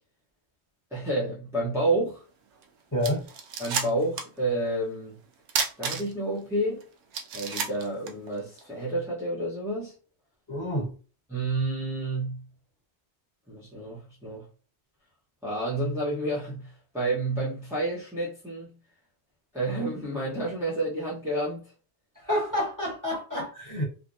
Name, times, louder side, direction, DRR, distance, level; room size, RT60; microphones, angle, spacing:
voice 1, 0.9-2.2 3.6-5.2 5.8-6.8 7.3-9.9 11.3-12.4 13.5-14.4 15.4-18.7 19.5-21.6, right 2 dB, 5° right, 0.8 m, -29 dB
sound 1, 2.6-2.7 3.0-4.4 4.7-4.8 5.5-6.4 6.8-6.9 7.1-8.7, right 6 dB, 85° right, 0.9 m, -31 dB
voice 2, 2.9-3.3 10.5-10.9 22.1-23.8, left 1 dB, 15° left, 1.3 m, -29 dB
3.4 x 2.1 x 2.6 m
omnidirectional pair, 1.2 m